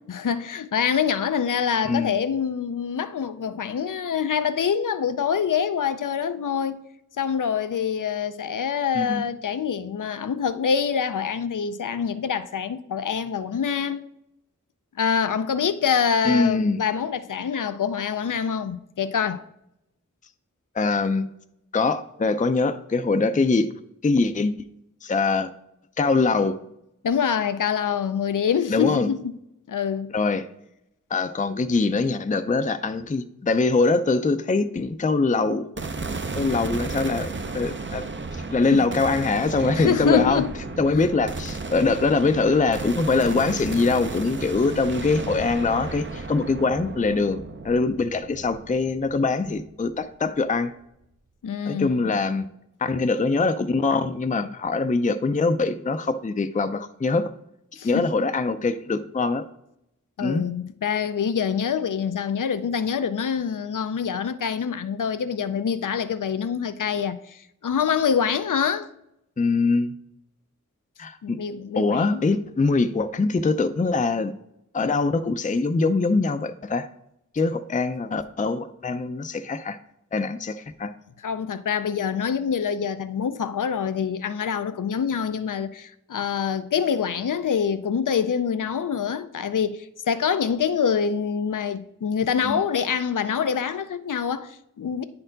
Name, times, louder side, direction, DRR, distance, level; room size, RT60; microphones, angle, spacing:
voice 1, 0.1-6.9 7.2-14.0 15.0-19.4 27.0-29.3 29.7-30.1 38.7-38.9 39.7-40.5 40.9-41.1 51.4-52.1 57.8-58.1 60.2-68.9 71.2-72.2 81.2-95.0, left 7 dB, 80° left, 0.5 m, -25 dB
voice 2, 1.8-2.2 8.9-9.2 16.2-16.8 20.8-21.3 21.7-23.7 24.0-24.7 25.0-25.5 26.0-26.6 28.7-29.1 30.1-30.5 31.1-35.7 36.4-38.0 38.3-40.4 40.8-47.4 47.6-50.7 51.7-52.5 52.8-57.3 57.8-59.5 60.2-60.5 69.4-69.9 71.0-71.4 71.8-74.3 74.7-76.9 77.3-79.8 80.1-80.9 92.4-92.6, left 3 dB, 25° left, 0.4 m, -23 dB
sound 1, 35.8-50.1, right 3 dB, 40° right, 0.5 m, -33 dB
9.8 x 4.3 x 3.9 m
wide cardioid pair, 50°, 31 cm